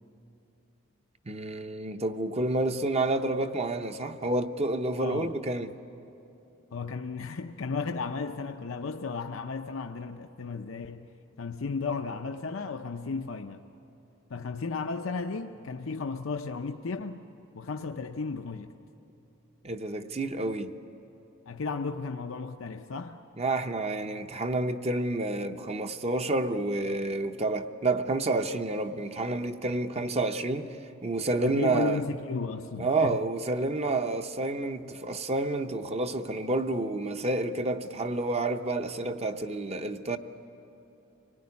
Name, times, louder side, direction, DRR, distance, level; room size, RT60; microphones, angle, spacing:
voice 1, 1.3-5.8 19.6-20.7 23.4-30.7 31.0-32.0 32.8-40.2, right 2 dB, 30° right, 0.8 m, -29 dB
voice 2, 5.0-5.3 6.7-11.1 11.4-13.7 14.3-17.2 17.5-18.7 21.5-23.2 31.4-33.2, left 4 dB, 70° left, 0.6 m, -34 dB
25.0 x 19.0 x 9.6 m
head